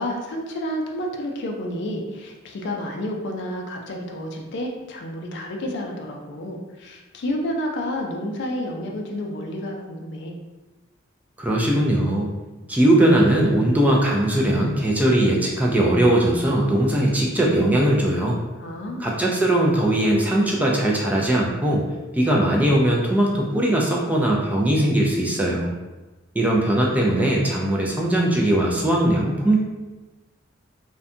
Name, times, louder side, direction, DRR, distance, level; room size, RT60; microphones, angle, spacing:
voice 1, 0.0-10.4 18.6-19.1, left 1 dB, 60° left, 1 dB, 0.4 m, -30 dB
voice 2, 11.4-12.3 12.7-18.4 19.0-21.8 22.1-25.7 26.4-29.6, right 1 dB, 10° right, -3 dB, 0.3 m, -20 dB
2.6 x 2.2 x 2.5 m, 1.2 s
head